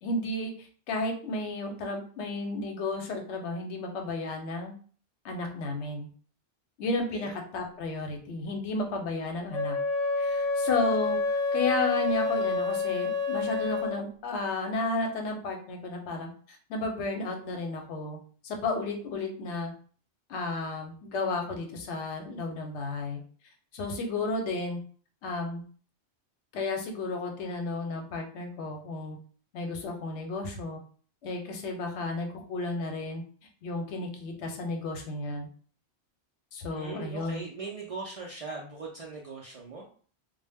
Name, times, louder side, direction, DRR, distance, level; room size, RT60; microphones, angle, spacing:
voice 1, 0.0-4.7 5.2-6.1 6.8-9.8 10.2-18.2 18.4-19.7 20.3-23.2 23.7-24.8 25.2-25.6 26.5-29.2 29.5-30.8 31.2-33.2 33.6-35.5 36.5-37.4, left 2 dB, 85° left, 3 dB, 0.9 m, -33 dB
Wind instrument woodwind instrument, 9.5-14.0, left 3 dB, 40° left, 0.7 m, -28 dB
voice 2, 36.7-39.9, right 3 dB, 60° right, -4 dB, 0.3 m, -40 dB
2.1 x 2.0 x 3.3 m, 0.43 s
omnidirectional pair, 1.1 m